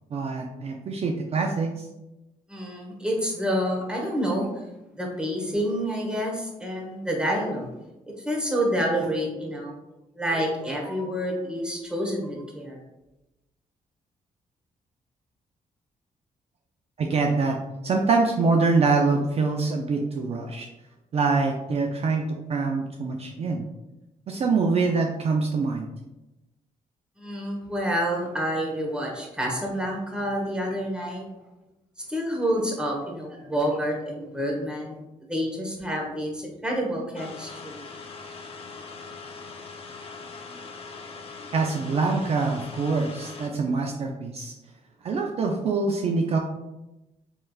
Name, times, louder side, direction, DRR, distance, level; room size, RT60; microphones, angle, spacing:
voice 1, 0.1-1.7 17.0-17.6 17.8-20.7 21.1-22.2 22.5-23.7 24.3-25.9 41.5-44.5 45.0-46.4, right 4 dB, 50° right, 2 dB, 0.4 m, -24 dB
voice 2, 2.5-4.5 4.9-7.7 8.2-9.7 10.1-12.8 27.2-31.3 32.1-35.0 35.3-37.8, equal, 5° right, -1 dB, 1.1 m, -28 dB
sound 1, 37.2-43.5, left 4 dB, 45° left, 0.6 m, -41 dB
4.6 x 3.3 x 2.3 m, 0.98 s
cardioid pair, 95°, 14 cm